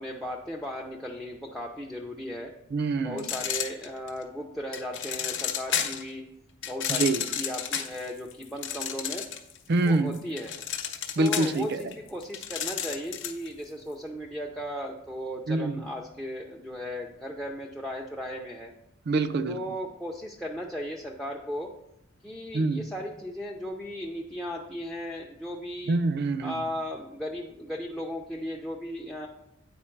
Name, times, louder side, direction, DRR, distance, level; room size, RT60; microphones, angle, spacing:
voice 1, 0.0-2.5 3.0-6.2 6.6-9.3 9.8-10.5 11.2-18.7 19.5-21.7 22.2-26.0 26.4-29.3, equal, ahead, 1 dB, 0.5 m, -36 dB
voice 2, 2.7-3.3 6.9-7.2 9.7-10.2 11.2-11.8 15.5-15.8 19.1-19.6 22.5-22.9 25.9-26.6, right 2 dB, 50° right, 11 dB, 0.5 m, -26 dB
sound 1, 3.2-4.2 4.7-6.1 6.6-9.6 9.9-13.5, left 8 dB, 60° left, 0.7 m, -32 dB
8.6 x 4.6 x 4.5 m, 0.82 s
head